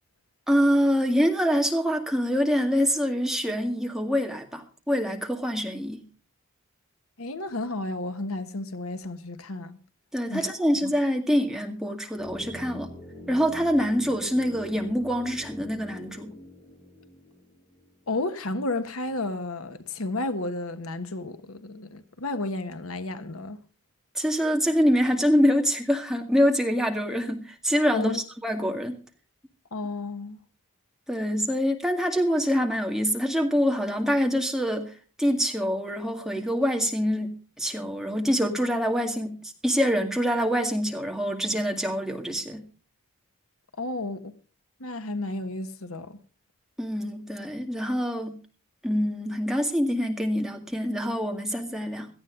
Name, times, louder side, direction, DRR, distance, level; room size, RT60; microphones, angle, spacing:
voice 1, 0.5-6.0 10.1-12.9 13.3-16.3 24.2-29.0 31.1-34.9 35.2-39.4 39.6-42.6 46.8-48.4 48.8-52.1, equal, ahead, 2.0 m, -25 dB
voice 2, 7.2-9.8 10.3-10.5 10.8-10.9 18.1-23.6 27.9-28.2 29.7-30.4 43.8-44.3 44.8-46.2, left 2 dB, 75° left, 1.4 m, -32 dB
sound 1, 12.2-18.2 18.4-18.5, equal, 30° left, 4.3 m, -44 dB
17.5 x 13.5 x 3.8 m
head